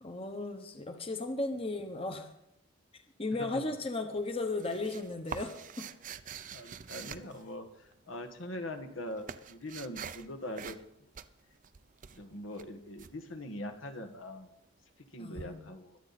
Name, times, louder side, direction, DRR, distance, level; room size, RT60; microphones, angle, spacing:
voice 1, 0.0-2.3 3.2-5.9 15.2-15.6, left 2 dB, 30° left, 6 dB, 1.1 m, -35 dB
sound 1, 4.2-8.0 8.7-10.3 10.6-10.9 11.1-13.1 15.4-15.5, right 7 dB, 40° right, 0.5 m, -45 dB
voice 2, 6.5-11.1 12.1-14.5 15.1-16.0, left 1 dB, 80° left, 6 dB, 1.6 m, -42 dB
22.5 x 8.8 x 4.2 m, 0.80 s
head